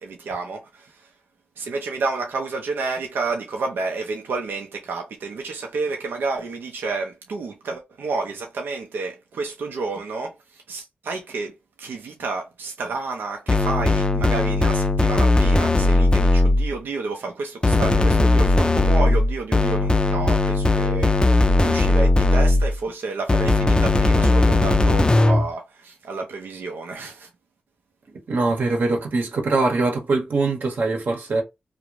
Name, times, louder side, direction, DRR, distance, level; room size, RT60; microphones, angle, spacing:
voice 1, 0.0-1.1 1.6-27.3, right 3 dB, 90° right, 0.4 m, -30 dB
sound 1, 13.5-16.7 17.6-22.8 23.3-25.5, left 2 dB, 25° left, 0.4 m, -18 dB
voice 2, 28.1-31.4, right 3 dB, 70° right, 0.8 m, -23 dB
2.5 x 2.0 x 3.0 m
cardioid pair, 65°, 3 cm